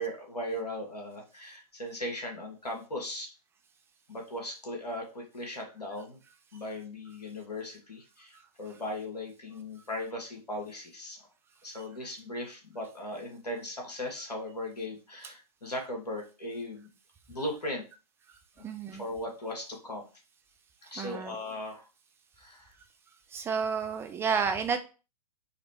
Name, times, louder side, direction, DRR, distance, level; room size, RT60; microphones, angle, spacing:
voice 1, 0.0-3.3 4.1-6.2 6.5-11.2 11.6-16.9 17.3-17.8 18.6-18.7 19.0-20.0 20.9-21.9 22.4-22.7, left 1 dB, 85° left, 1 dB, 1.6 m, -38 dB
voice 2, 18.6-19.0 21.0-21.4 23.3-24.8, right 6 dB, 10° right, 7 dB, 0.4 m, -31 dB
4.0 x 3.2 x 2.9 m, 0.33 s
figure-of-eight pair, 115°, 20 cm